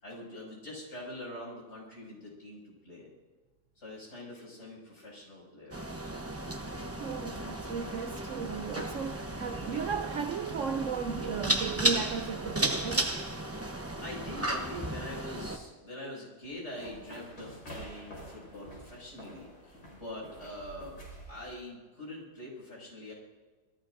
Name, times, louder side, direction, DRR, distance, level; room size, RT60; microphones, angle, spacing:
voice 1, 0.0-3.1 3.7-5.9 14.0-21.0 21.3-23.1, left 1 dB, 40° left, 6.7 m, -44 dB
sound 1, 5.7-15.6, right 1 dB, 15° right, 0.5 m, -34 dB
voice 2, 7.0-13.2, right 6 dB, 75° right, 0.7 m, -35 dB
sound 2, 16.4-21.5, right 1 dB, 60° left, 6.0 m, -48 dB
27.0 x 20.0 x 2.6 m
omnidirectional pair, 2.0 m